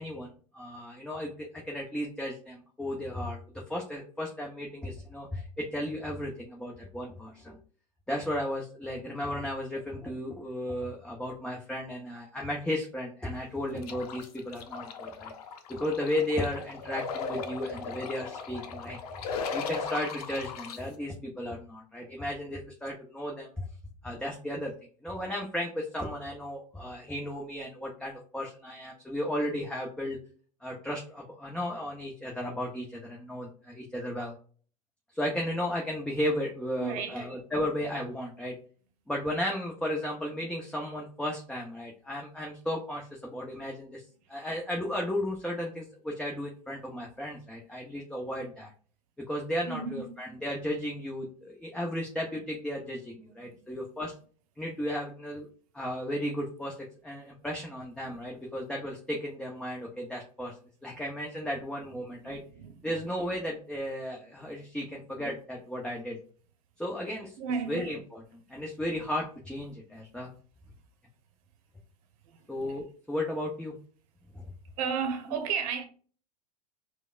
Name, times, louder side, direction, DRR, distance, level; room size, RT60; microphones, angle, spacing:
voice 1, 0.0-3.4 3.7-7.6 8.1-15.3 15.7-23.7 24.0-24.7 25.0-30.2 30.6-34.3 35.1-38.5 39.1-44.0 44.3-48.7 49.3-54.1 54.6-55.5 55.7-56.8 57.0-60.5 60.8-62.4 62.8-66.2 66.8-67.4 67.7-68.2 68.5-70.3 72.5-73.7 74.3-74.4, left 1 dB, 5° left, 0.8 m, -34 dB
sound 1, 13.8-20.8, left 5 dB, 65° left, 0.6 m, -37 dB
voice 2, 36.8-37.3 49.7-50.2 53.3-53.8 57.2-57.3 58.0-58.3 62.2-63.0 64.4-64.5 67.4-67.8 72.3-72.8 74.8-75.8, right 6 dB, 55° right, 0.9 m, -35 dB
4.9 x 2.2 x 2.3 m
hypercardioid pair, 95°, 21 cm